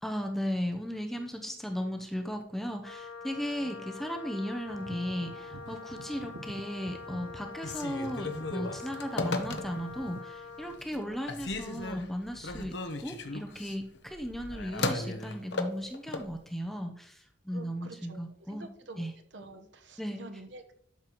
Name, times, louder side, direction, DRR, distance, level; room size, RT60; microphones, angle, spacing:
voice 1, 0.0-12.7 13.0-18.7 19.0-19.1 20.0-20.3, equal, ahead, 3 dB, 0.7 m, -36 dB
Wind instrument woodwind instrument, 2.8-10.9, left 5 dB, 85° left, 1.1 m, -45 dB
sound 1, 4.7-10.2, right 3 dB, 85° right, 0.6 m, -48 dB
Telephone, 7.5-10.0 10.5-11.0 11.3-16.3, left 2 dB, 60° left, 0.9 m, -36 dB
voice 2, 10.9-11.4 17.5-18.2 18.5-19.0 19.3-20.7, right 2 dB, 60° right, 7 dB, 1.1 m, -48 dB
11.5 x 6.6 x 3.0 m, 0.64 s
head